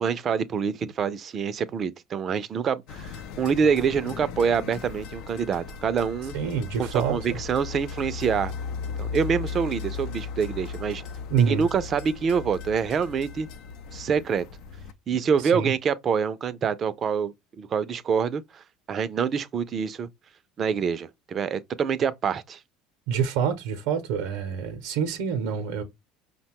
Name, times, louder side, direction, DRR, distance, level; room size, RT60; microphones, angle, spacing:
voice 1, 0.0-6.3 6.8-8.5 9.0-11.0 11.4-13.5 13.9-14.5 15.1-20.1 20.6-22.6, right 6 dB, 40° right, 0.4 m, -26 dB
sound 1, 2.9-14.9, left 5 dB, 70° left, 0.5 m, -37 dB
voice 2, 6.3-7.4 11.3-11.7 15.4-15.7 23.1-25.8, right 7 dB, 80° right, 0.6 m, -26 dB
5.1 x 2.2 x 2.9 m
supercardioid pair, 95°, 0 cm